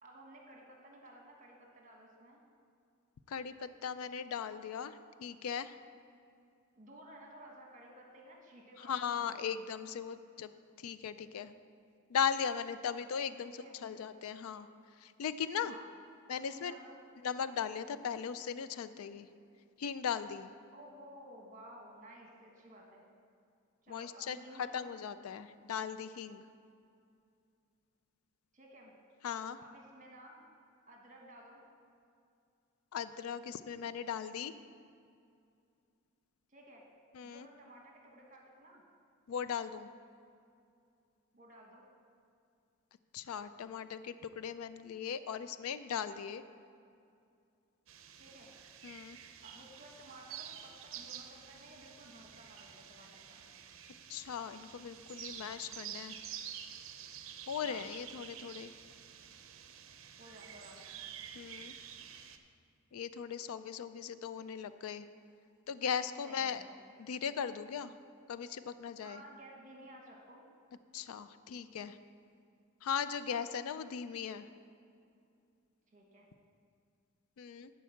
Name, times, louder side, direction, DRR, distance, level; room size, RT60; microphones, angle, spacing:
voice 1, 0.0-2.4 6.7-9.3 13.4-13.7 15.6-15.9 16.3-17.0 20.7-23.1 23.8-24.9 28.5-28.9 29.6-30.5 30.9-31.6 36.5-36.9 37.2-38.8 41.3-41.9 48.2-48.5 49.4-53.4 57.6-57.8 60.2-61.1 66.1-66.8 69.0-70.4 75.9-76.3, right 1 dB, 35° right, 0 dB, 1.4 m, -55 dB
voice 2, 3.3-5.7 8.8-10.5 10.8-11.5 12.1-13.5 13.8-14.7 15.0-15.7 16.3-16.7 17.2-19.3 19.8-20.5 23.9-26.4 29.2-29.6 32.9-34.5 37.1-37.5 39.3-39.9 43.1-46.4 48.8-49.2 54.1-56.2 57.5-58.7 61.3-61.7 62.9-65.1 65.7-66.6 67.0-67.9 68.3-69.2 70.9-72.0 72.8-74.5 77.4-77.7, left 7 dB, 80° left, 13 dB, 0.4 m, -38 dB
sound 1, 47.9-62.4, right 9 dB, 65° right, 0.6 m, -49 dB
11.5 x 4.7 x 7.2 m, 2.4 s
head